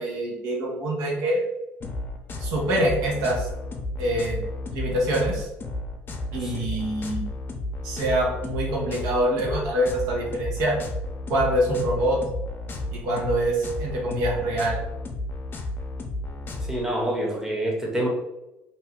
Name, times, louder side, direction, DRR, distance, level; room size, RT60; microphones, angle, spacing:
voice 1, 0.0-1.4 2.4-3.5 4.0-4.4 4.7-5.5 6.3-7.2 7.8-10.7 11.3-12.2 12.9-14.8, right 1 dB, 75° right, -3 dB, 1.0 m, -25 dB
sound 1, 1.8-16.8, left 2 dB, 40° left, 0.6 m, -33 dB
voice 2, 16.7-18.1, right 1 dB, 10° right, -1 dB, 0.9 m, -26 dB
2.8 x 2.2 x 3.5 m, 0.90 s
supercardioid pair, 75°, 6 cm